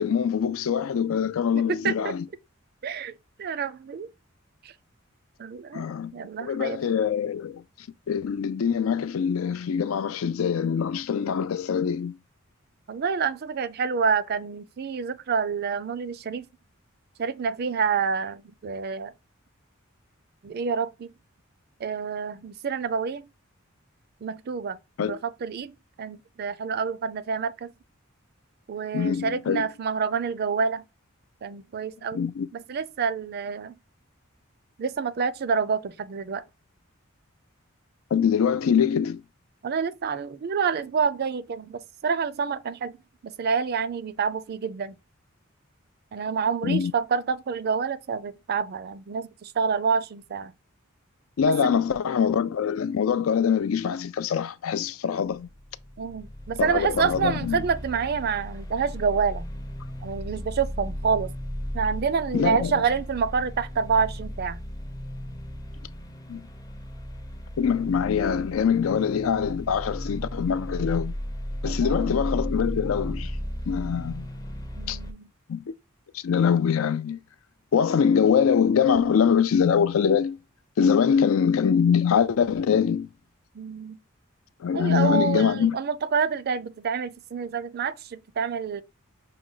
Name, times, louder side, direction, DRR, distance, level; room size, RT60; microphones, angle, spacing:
voice 1, 0.0-2.3 5.7-6.1 6.4-12.2 25.0-25.2 28.9-29.7 32.1-32.5 38.1-39.2 46.6-46.9 51.4-55.5 56.6-57.6 62.3-62.7 66.3-66.5 67.6-71.1 71.6-73.4 73.7-74.3 74.9-75.0 75.5-75.7 76.1-77.2 77.7-80.4 80.8-83.1 84.6-85.8, left 7 dB, 75° left, 0.4 m, -24 dB
voice 2, 1.5-2.1 2.8-3.1 3.4-4.1 4.6-4.7 5.4-6.8 12.9-16.5 17.2-19.1 20.4-21.1 21.8-23.2 24.2-25.7 26.0-27.7 28.7-30.8 31.4-32.2 32.5-33.7 34.8-36.4 39.6-43.0 43.2-45.0 46.1-50.5 51.5-51.7 56.0-59.5 60.0-61.3 61.7-64.6 71.6-72.1 74.8-75.3 83.5-84.0 84.7-88.8, right 5 dB, 50° right, 0.4 m, -28 dB
sound 1, 55.3-75.1, equal, 20° left, 0.6 m, -35 dB
6.0 x 2.2 x 3.8 m
head